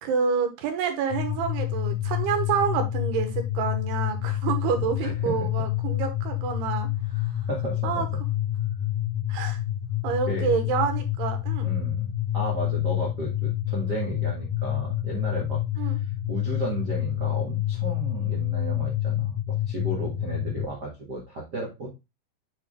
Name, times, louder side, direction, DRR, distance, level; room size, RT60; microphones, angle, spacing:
voice 1, 0.0-6.9 7.8-8.1 9.3-9.6 10.0-11.7 15.8-16.0, right 6 dB, 90° right, 5 dB, 3.2 m, -28 dB
sound 1, 1.1-20.7, left 13 dB, 75° left, 1.6 m, -28 dB
voice 2, 4.8-5.5 7.5-8.0 10.3-10.5 11.6-21.9, right 2 dB, 65° right, -2 dB, 1.0 m, -34 dB
7.1 x 4.3 x 3.2 m, 0.24 s
omnidirectional pair, 4.6 m